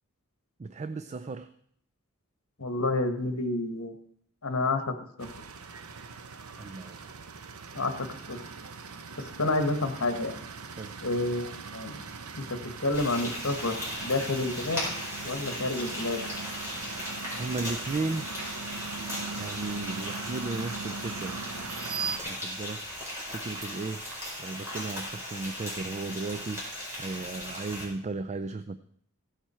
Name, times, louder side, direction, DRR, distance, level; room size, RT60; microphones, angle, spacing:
voice 1, 0.6-1.5 6.6-7.2 10.8-10.9 17.3-18.3 19.3-21.4 22.2-22.9 23.3-24.1 24.4-28.8, right 3 dB, 30° right, 12 dB, 0.4 m, -35 dB
voice 2, 2.6-3.9 4.4-5.3 7.7-8.4 9.4-10.4 11.0-12.0 12.5-14.8 15.2-16.2, left 2 dB, 70° left, 7 dB, 1.5 m, -29 dB
sound 1, 5.2-22.2, right 4 dB, 85° right, 0.9 m, -40 dB
Frying (food), 12.9-27.8, left 1 dB, 10° right, 4.6 m, -37 dB
16.0 x 9.4 x 4.4 m, 0.68 s
head